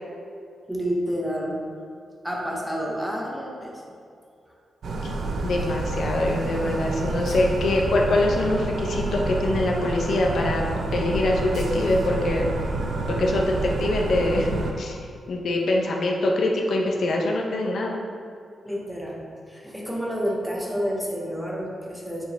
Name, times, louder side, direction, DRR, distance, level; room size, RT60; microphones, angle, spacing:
voice 1, 0.7-1.6 2.2-3.8 4.5-4.6 7.6-7.7 18.6-22.2, equal, ahead, -2 dB, 0.9 m, -29 dB
sound 1, 4.8-14.7, right 2 dB, 60° right, 0.7 m, -28 dB
voice 2, 5.4-12.5 13.1-15.0 15.3-18.0, left 2 dB, 60° left, 0 dB, 0.7 m, -24 dB
8.7 x 4.5 x 3.4 m, 2.3 s
wide cardioid pair, 165°, 0 cm